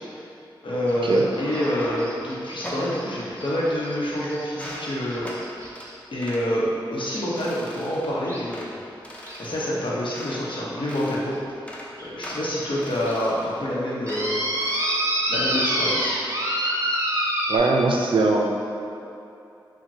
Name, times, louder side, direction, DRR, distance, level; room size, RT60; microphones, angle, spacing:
voice 1, 0.6-5.6 6.1-8.7 9.4-11.4 11.7-14.4 15.3-16.1, equal, 70° left, -6 dB, 0.8 m, -27 dB
sound 1, 0.9-5.9 7.1-7.2 8.3-8.4 9.2-9.4 9.8-9.9 10.5-10.6 11.3-11.4 12.0-12.1 12.6-12.7 13.1-13.2 14.1-17.6, right 1 dB, 35° right, 0.7 m, -27 dB
sound 2, 1.1-2.3 2.6-2.9 3.5-4.2 4.5-4.9 5.2-5.4 5.8-5.9 6.2-6.5 6.9-7.1 7.4-8.1 8.5-8.7 9.0-10.5 10.8-11.3 11.6-11.9 12.2-13.6 14.1-14.3 14.6-15.1 15.4-15.8, equal, 15° left, 0.6 m, -39 dB
voice 2, 17.5-18.4, right 3 dB, 70° right, 1 dB, 0.4 m, -20 dB
5.9 x 2.2 x 2.7 m, 2.8 s
cardioid pair, 50°, 9 cm